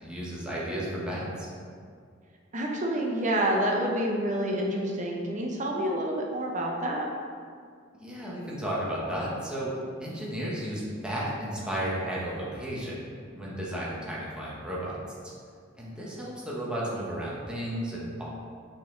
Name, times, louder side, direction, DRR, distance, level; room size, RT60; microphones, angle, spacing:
voice 1, 0.0-1.5 8.0-9.7 10.0-13.0 13.3-15.0 15.8-18.2, right 1 dB, 5° right, -7 dB, 1.1 m, -33 dB
voice 2, 2.5-7.1, right 1 dB, 40° right, -1 dB, 0.8 m, -28 dB
5.9 x 4.1 x 3.8 m, 2.1 s
head